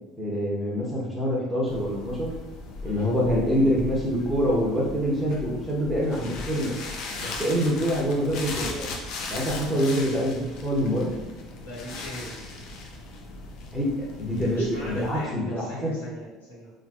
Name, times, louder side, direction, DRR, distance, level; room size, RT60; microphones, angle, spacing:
voice 1, 0.2-2.3 2.8-6.7 7.2-8.8 9.3-11.1 13.7-13.9 14.2-15.9, equal, 5° right, -5 dB, 0.9 m, -25 dB
sound 1, 1.7-15.3, left 3 dB, 60° left, 0.5 m, -38 dB
voice 2, 11.6-12.4 14.5-16.7, left 1 dB, 90° left, -10 dB, 1.4 m, -40 dB
3.2 x 2.5 x 2.3 m, 1.1 s
hypercardioid pair, 65°, 0 cm